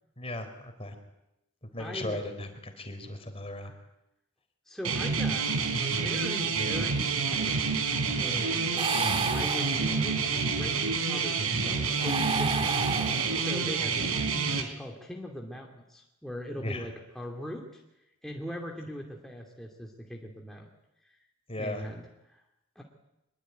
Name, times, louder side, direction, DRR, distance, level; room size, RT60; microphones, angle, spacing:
voice 1, 0.2-1.0 1.6-3.7 14.2-14.3 16.6-16.9 21.5-21.9, left 1 dB, 25° left, 7 dB, 3.9 m, -37 dB
voice 2, 1.8-2.2 4.6-5.5 5.9-7.7 8.2-17.8 18.2-20.7 21.0-21.2 21.6-22.4 22.7-22.8, equal, ahead, -1 dB, 2.7 m, -40 dB
sound 1, 4.8-14.6, right 4 dB, 90° right, 3.8 m, -28 dB
sound 2, 8.8-10.2 11.9-13.7, right 4 dB, 25° right, 2.1 m, -32 dB
25.0 x 22.5 x 9.3 m, 0.89 s
head